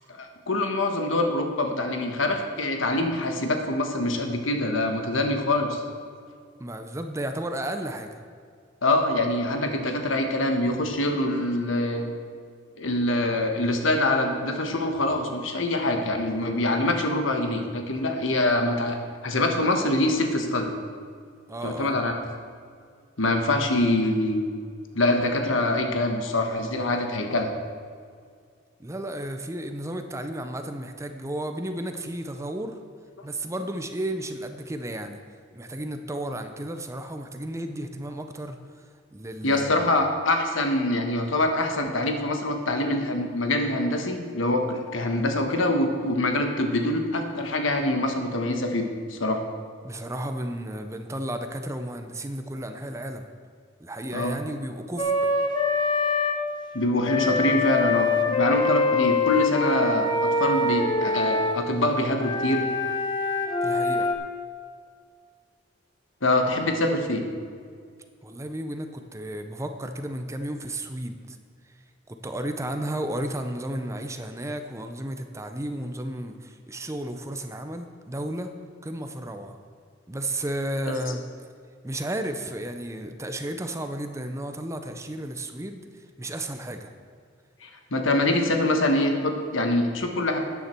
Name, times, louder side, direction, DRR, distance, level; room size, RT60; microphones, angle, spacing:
voice 1, 0.1-5.8 8.8-12.2 12.8-19.0 19.2-20.7 21.6-22.2 23.2-24.4 24.9-27.5 33.2-33.3 39.4-48.8 49.1-49.4 54.1-54.4 56.7-62.7 66.2-67.2 87.6-90.4, left 1 dB, 80° left, 4 dB, 1.3 m, -24 dB
voice 2, 6.6-8.2 21.5-21.9 28.8-32.8 33.2-35.2 35.5-38.6 39.1-39.9 49.8-53.3 53.8-55.3 63.6-64.1 68.2-71.4 72.1-78.5 78.8-79.6 80.1-81.2 81.8-85.8 86.2-86.9, right 1 dB, 15° right, 7 dB, 0.6 m, -33 dB
Wind instrument woodwind instrument, 55.0-56.4 57.0-61.6 62.2-64.1, left 3 dB, 25° left, 1.1 m, -24 dB
12.5 x 9.5 x 4.5 m, 2.1 s
head